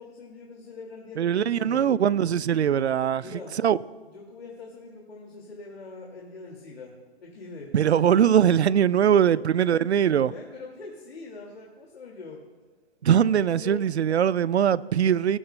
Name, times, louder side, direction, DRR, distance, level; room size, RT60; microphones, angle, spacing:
voice 1, 0.0-1.9 3.2-3.5 4.1-6.9 7.2-7.7 9.3-9.4 9.7-9.8 10.2-12.4 13.0-13.8, left 3 dB, 70° left, 2.2 m, -43 dB
voice 2, 1.2-3.2 3.6-3.8 7.7-10.3 13.0-15.4, right 9 dB, 85° right, 0.5 m, -21 dB
18.5 x 12.0 x 2.2 m
hypercardioid pair, 145°, 32 cm